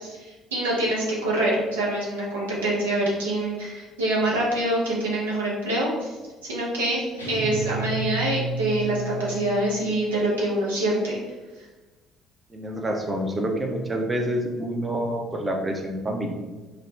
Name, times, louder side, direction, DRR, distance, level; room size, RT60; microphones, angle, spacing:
voice 1, 0.0-6.2 6.4-11.2, right 1 dB, 75° right, -5 dB, 0.6 m, -25 dB
sound 1, 7.2-9.7, right 3 dB, 90° left, 0.4 m, -31 dB
voice 2, 12.5-16.3, right 1 dB, 20° right, 2 dB, 0.5 m, -27 dB
2.5 x 2.1 x 3.1 m, 1.2 s
figure-of-eight pair, 50°, 0 cm